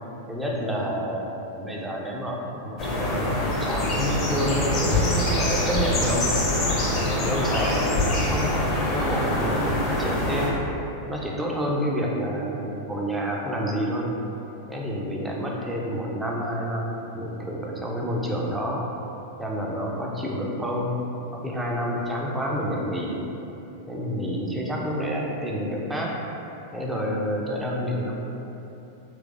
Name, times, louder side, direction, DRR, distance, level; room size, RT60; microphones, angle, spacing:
voice 1, 0.3-6.4 6.9-10.5 11.1-14.1 14.7-18.8 19.4-20.9 21.3-23.2 23.9-26.1 26.7-28.1, equal, 5° right, -3 dB, 0.5 m, -29 dB
sound 1, 2.8-10.5, left 1 dB, 35° left, 0.7 m, -24 dB
3.3 x 3.1 x 2.5 m, 3.0 s
figure-of-eight pair, 90°, 0 cm